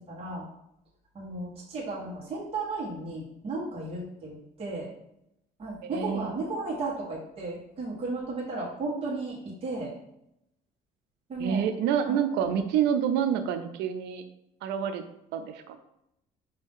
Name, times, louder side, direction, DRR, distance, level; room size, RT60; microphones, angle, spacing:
voice 1, 0.1-0.4 1.1-4.9 5.6-9.9 11.3-11.6 12.0-12.6, right 3 dB, 35° right, -5 dB, 1.3 m, -34 dB
voice 2, 5.8-6.3 11.4-14.3 14.6-15.0 15.3-15.8, right 8 dB, 90° right, 9 dB, 0.5 m, -27 dB
5.2 x 2.8 x 3.5 m, 0.83 s
cardioid pair, 110°, 17 cm